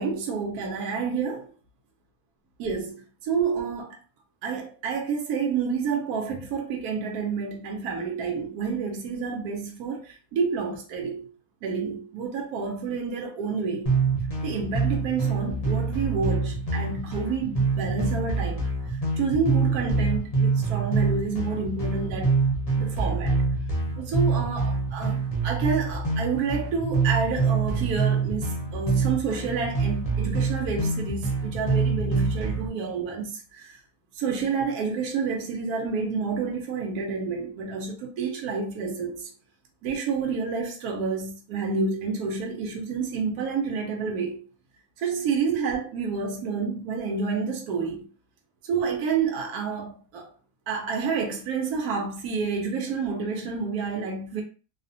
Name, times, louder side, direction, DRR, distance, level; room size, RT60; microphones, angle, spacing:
voice 1, 0.0-1.5 2.6-4.0 4.4-11.3 11.6-14.0 14.4-18.7 19.2-22.3 22.7-23.4 24.0-33.8 34.2-39.3 39.8-44.5 45.0-48.1 48.6-50.3 50.7-54.4, right 5 dB, 75° right, 1.1 m, -29 dB
sound 1, 13.8-32.7, right 4 dB, 40° left, 0.5 m, -26 dB
2.8 x 2.1 x 2.6 m
omnidirectional pair, 1.7 m